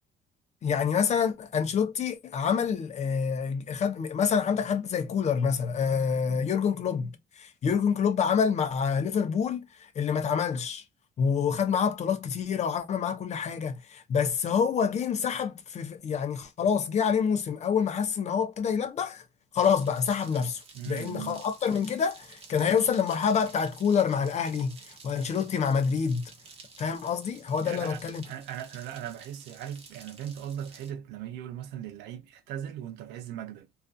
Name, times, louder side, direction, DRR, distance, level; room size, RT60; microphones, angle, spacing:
voice 1, 0.6-10.8 11.2-19.2 19.5-26.2 26.8-28.2, left 6 dB, 40° left, 0.6 m, -27 dB
sound 1, 19.6-30.9, right 4 dB, 35° right, 0.9 m, -52 dB
voice 2, 20.7-21.4 27.6-33.7, right 10 dB, 90° right, 0.5 m, -39 dB
2.5 x 2.3 x 2.2 m
cardioid pair, 110°, 17 cm